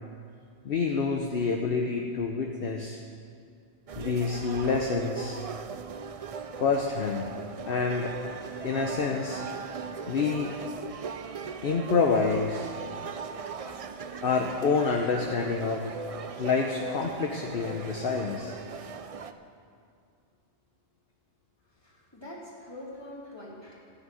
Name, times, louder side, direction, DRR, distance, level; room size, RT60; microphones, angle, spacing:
voice 1, 0.6-3.0 4.0-5.4 6.6-7.3 7.7-8.1 8.6-9.4 10.1-10.5 11.6-12.7 14.2-15.9 16.4-18.5, left 5 dB, 60° left, 2 dB, 1.0 m, -27 dB
sound 1, 3.9-19.3, right 5 dB, 45° right, 0.4 m, -39 dB
voice 2, 21.7-23.9, left 1 dB, 20° left, -5 dB, 2.7 m, -44 dB
14.5 x 6.4 x 9.0 m, 2.3 s
omnidirectional pair, 1.2 m